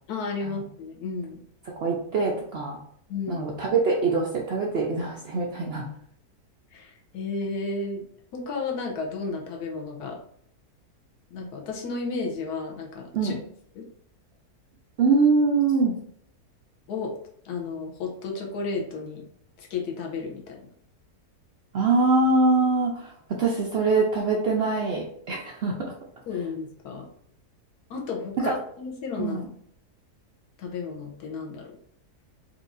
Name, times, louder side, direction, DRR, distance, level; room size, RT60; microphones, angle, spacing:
voice 1, 0.1-1.4 3.1-3.5 6.7-8.0 8.3-10.2 11.3-13.3 13.8-13.9 16.9-17.1 17.4-19.2 19.6-20.7 26.3-27.0 27.9-29.4 30.6-31.8, left 4 dB, 80° left, 0 dB, 1.3 m, -33 dB
voice 2, 1.8-2.8 3.3-5.9 13.1-13.4 15.0-15.9 21.7-25.9 28.4-28.5 29.2-29.5, right 3 dB, 85° right, -2 dB, 0.5 m, -23 dB
4.5 x 2.5 x 2.5 m, 0.66 s
omnidirectional pair, 1.7 m